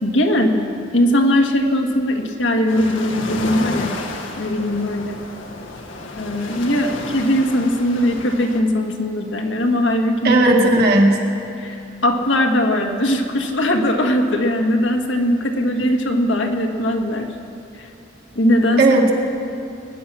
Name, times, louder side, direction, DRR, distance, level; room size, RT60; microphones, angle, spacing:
voice 1, 0.0-4.0 4.3-5.2 6.1-10.4 11.6-17.4 17.7-17.9 18.3-19.0, left 1 dB, 70° left, 3 dB, 1.5 m, -20 dB
sound 1, 2.7-8.6, left 2 dB, 90° left, 1.6 m, -31 dB
voice 2, 10.2-11.2 18.8-19.1, right 2 dB, 55° right, -1 dB, 2.0 m, -14 dB
21.0 x 10.0 x 6.2 m, 2.6 s
head